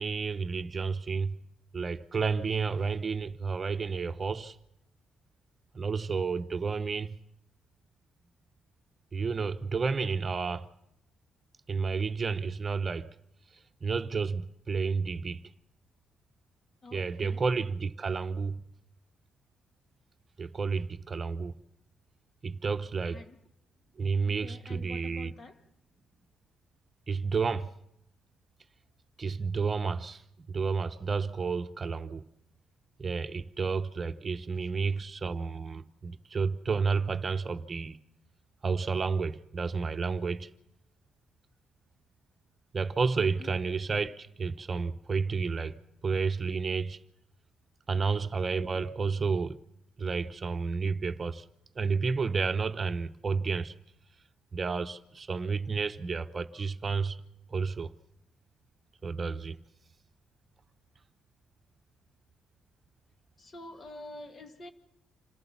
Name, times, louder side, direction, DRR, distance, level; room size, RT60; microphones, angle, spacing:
voice 1, 0.0-1.4 1.7-4.6 5.7-7.2 9.1-10.7 11.7-13.1 13.8-15.4 16.9-18.6 20.4-21.5 22.4-23.2 24.0-25.3 27.1-27.7 29.2-30.2 30.5-32.3 33.0-38.0 38.6-40.5 42.7-45.8 46.0-47.0 47.9-49.6 50.0-51.4 51.8-53.7 54.5-57.2 57.5-57.9 59.0-59.6, right 5 dB, 35° right, 0.9 m, -31 dB
voice 2, 16.8-17.4 23.1-23.4 24.2-25.6 43.4-43.5 63.4-64.7, left 2 dB, 45° left, 2.0 m, -47 dB
27.0 x 14.5 x 7.1 m
cardioid pair, 90°, 0 cm